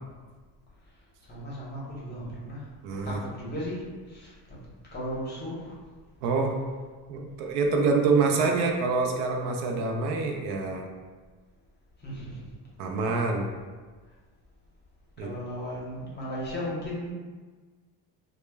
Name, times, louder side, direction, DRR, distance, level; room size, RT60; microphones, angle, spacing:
voice 1, 1.2-2.7 3.0-4.6 4.9-5.8 12.0-12.5 13.0-13.2 15.2-17.1, equal, 25° left, -5 dB, 0.7 m, -36 dB
voice 2, 2.8-3.2 6.2-6.6 7.1-10.9 12.8-13.5 15.2-15.3, right 4 dB, 75° right, 2 dB, 0.5 m, -26 dB
2.1 x 2.0 x 3.2 m, 1.4 s
cardioid pair, 130°, 42 cm